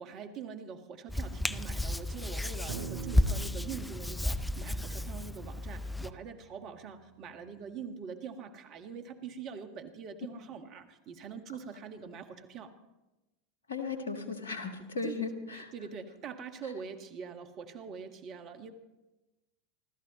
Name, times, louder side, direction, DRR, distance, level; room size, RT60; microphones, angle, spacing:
voice 1, 0.0-12.7 14.8-15.3 15.5-18.7, right 6 dB, 40° right, 7 dB, 1.5 m, -44 dB
Hands, 1.1-6.1, left 1 dB, 5° left, 0.5 m, -32 dB
sound 1, 2.7-7.2, right 7 dB, 65° right, 0.8 m, -45 dB
voice 2, 13.7-15.7, left 4 dB, 75° left, 6 dB, 1.6 m, -36 dB
27.5 x 13.5 x 3.0 m, 1.0 s
figure-of-eight pair, 85°, 0 cm